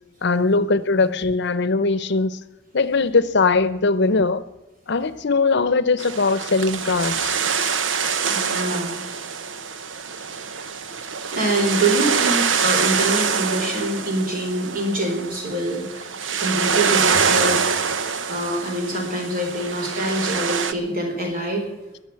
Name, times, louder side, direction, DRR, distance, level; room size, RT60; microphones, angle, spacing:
voice 1, 0.2-2.4 2.7-4.4 4.9-7.4, left 3 dB, 65° left, 0.7 m, -20 dB
sound 1, 6.0-20.7, right 6 dB, 90° right, 0.9 m, -25 dB
voice 2, 8.3-9.0 11.3-16.1 16.4-17.6 18.3-21.7, right 1 dB, 50° right, 4.4 m, -25 dB
20.5 x 7.2 x 9.5 m
head